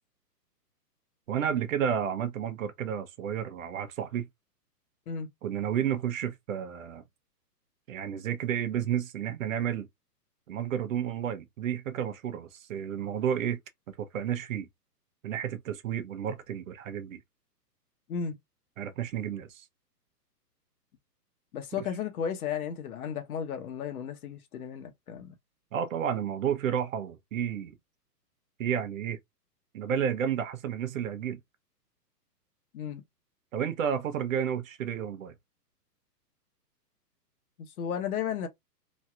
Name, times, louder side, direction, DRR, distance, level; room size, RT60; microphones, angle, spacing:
voice 1, 1.3-4.3 5.4-7.0 7.9-9.9 10.5-13.6 13.9-14.7 15.2-17.2 18.8-19.6 25.7-27.8 28.6-29.2 29.7-31.4 33.5-35.3, right 9 dB, 55° right, 0.8 m, -31 dB
voice 2, 21.5-25.3 32.7-33.0 37.6-38.5, left 7 dB, 60° left, 1.1 m, -34 dB
3.1 x 2.7 x 2.4 m
hypercardioid pair, 145°, 49 cm